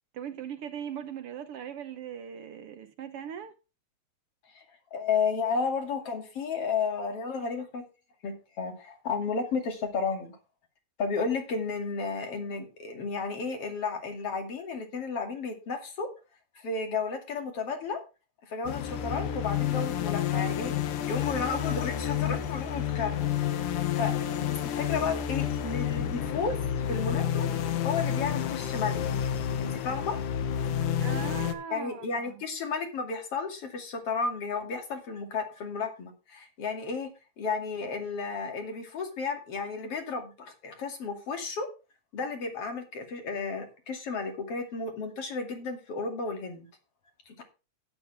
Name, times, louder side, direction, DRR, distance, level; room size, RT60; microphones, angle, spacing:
voice 1, 0.1-3.5 31.0-32.4, right 8 dB, 65° right, 1.5 m, -39 dB
voice 2, 4.9-7.8 8.2-10.4 11.0-16.1 16.5-18.0 18.4-27.5 27.8-29.0 29.6-30.2 31.7-37.1 37.4-41.7 42.1-46.7 47.3-47.4, left 5 dB, 50° left, 3.3 m, -33 dB
sound 1, 18.7-31.5, left 9 dB, 85° left, 2.6 m, -30 dB
11.5 x 9.9 x 3.4 m
omnidirectional pair, 3.4 m